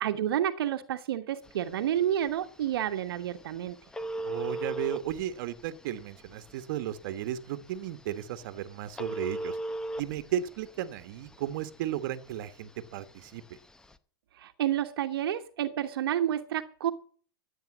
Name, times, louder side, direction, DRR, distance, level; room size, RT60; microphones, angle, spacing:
voice 1, 0.0-3.8 14.4-16.9, right 11 dB, 75° right, 7 dB, 1.2 m, -30 dB
Telephone, 1.4-14.0, right 1 dB, 5° left, 0.7 m, -41 dB
voice 2, 4.2-9.6 10.0-13.4, right 11 dB, 55° right, 11 dB, 1.3 m, -34 dB
14.0 x 9.0 x 6.1 m, 0.43 s
hypercardioid pair, 140°, 13 cm